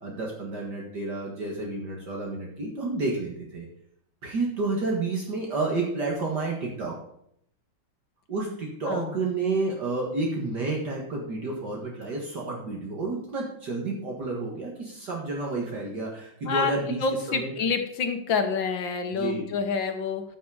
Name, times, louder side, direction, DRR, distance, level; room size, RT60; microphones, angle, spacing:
voice 1, 0.0-3.7 4.2-7.0 8.3-17.0 17.3-17.5 19.1-19.5, right 3 dB, 50° right, -2 dB, 2.3 m, -30 dB
voice 2, 16.4-20.2, left 5 dB, 65° left, 6 dB, 1.9 m, -28 dB
14.0 x 6.0 x 5.0 m, 0.70 s
omnidirectional pair, 2.3 m